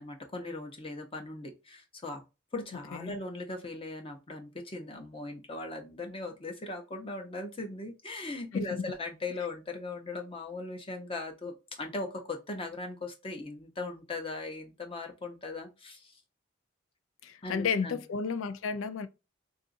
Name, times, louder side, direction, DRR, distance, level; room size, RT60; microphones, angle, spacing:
voice 1, 0.0-2.2 2.5-16.2 17.4-18.0, left 2 dB, 30° left, 0.7 m, -39 dB
voice 2, 8.5-8.8 17.2-19.1, left 5 dB, 90° left, 0.4 m, -32 dB
3.8 x 2.5 x 2.5 m
head